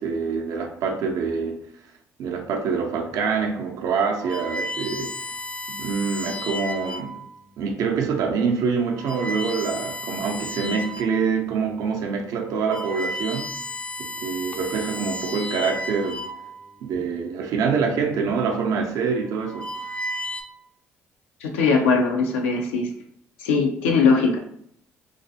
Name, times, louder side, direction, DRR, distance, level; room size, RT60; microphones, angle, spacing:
voice 1, 0.0-1.6 2.2-5.2 5.7-7.2 7.6-13.5 14.0-16.3 16.8-19.7, right 5 dB, 70° right, 3 dB, 0.4 m, -25 dB
sound 1, 3.1-3.3 3.9-7.3 8.0-8.2 8.8-11.2 11.7-11.8 12.3-16.8 17.8-18.2 19.1-20.4, left 1 dB, 20° left, 0.3 m, -33 dB
voice 2, 21.4-22.9 23.4-24.4, left 4 dB, 90° left, 2 dB, 0.4 m, -20 dB
2.4 x 2.3 x 2.6 m, 0.69 s
hypercardioid pair, 55°, 6 cm